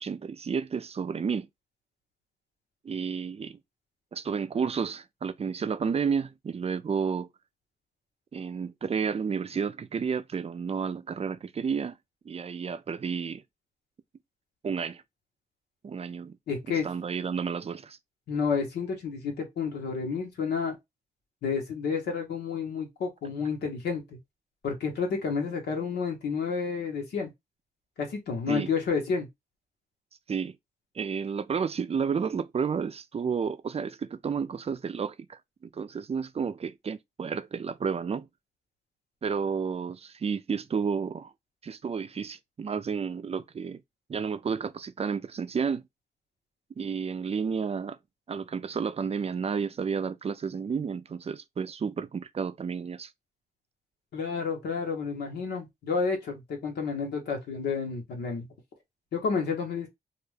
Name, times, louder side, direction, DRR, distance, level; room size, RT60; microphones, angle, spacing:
voice 1, 0.0-1.5 2.8-3.6 4.1-7.3 8.3-12.0 12.3-13.4 14.6-15.0 15.8-16.4 16.8-18.0 28.5-28.7 30.3-30.5 31.0-38.3 39.2-41.3 41.6-43.8 44.1-45.8 46.8-48.0 48.3-53.1, right 6 dB, 40° right, 0.4 m, -31 dB
voice 2, 16.5-16.9 18.3-20.8 21.4-24.0 24.6-27.3 28.0-29.3 54.1-58.5 59.1-59.9, left 5 dB, 85° left, 1.0 m, -30 dB
2.5 x 2.3 x 3.2 m
supercardioid pair, 45°, 17 cm